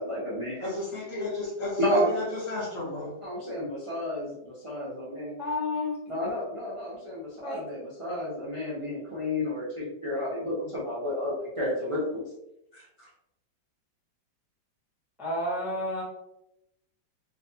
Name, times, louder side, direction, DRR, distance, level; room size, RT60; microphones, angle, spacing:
voice 1, 0.0-0.7 1.8-2.2 3.2-5.3 6.1-12.2 12.7-13.1, left 1 dB, 35° right, -8 dB, 0.5 m, -31 dB
voice 2, 0.6-3.1, left 2 dB, 45° left, -6 dB, 1.5 m, -33 dB
voice 3, 5.4-6.0 7.4-7.6 15.2-16.0, left 2 dB, ahead, -7 dB, 0.9 m, -30 dB
3.9 x 2.8 x 2.7 m, 0.84 s
omnidirectional pair, 2.0 m